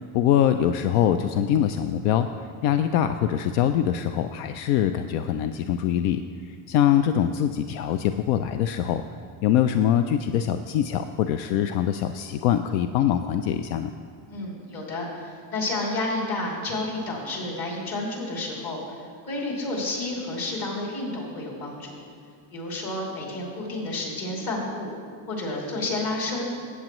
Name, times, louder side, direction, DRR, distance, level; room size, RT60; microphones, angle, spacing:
voice 1, 0.0-2.3 2.6-6.2 6.5-9.0 9.4-13.9, left 10 dB, 85° left, 9 dB, 0.5 m, -23 dB
voice 2, 14.3-22.0 22.5-25.0 25.3-26.5, left 2 dB, 45° left, -3 dB, 2.9 m, -30 dB
15.0 x 8.0 x 3.0 m, 2.1 s
cardioid pair, 130°, 48 cm